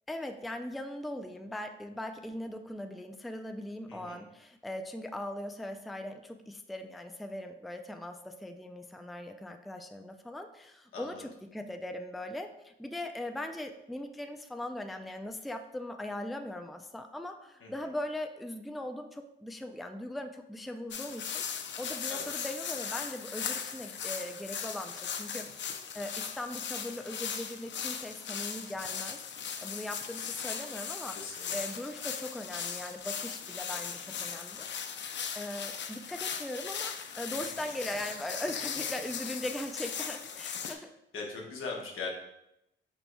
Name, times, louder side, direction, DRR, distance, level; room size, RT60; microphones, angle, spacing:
voice 1, 0.1-25.5 25.9-34.7 35.3-41.0, left 1 dB, ahead, 6 dB, 0.4 m, -40 dB
voice 2, 3.9-4.2 10.9-11.2 17.6-17.7 22.1-22.3 31.1-31.6 40.5-40.8 41.1-42.1, left 4 dB, 75° left, 0 dB, 1.1 m, -40 dB
sound 1, 20.9-40.7, left 7 dB, 60° left, 0.5 m, -38 dB
5.3 x 4.2 x 2.2 m, 0.84 s
cardioid pair, 70°, 21 cm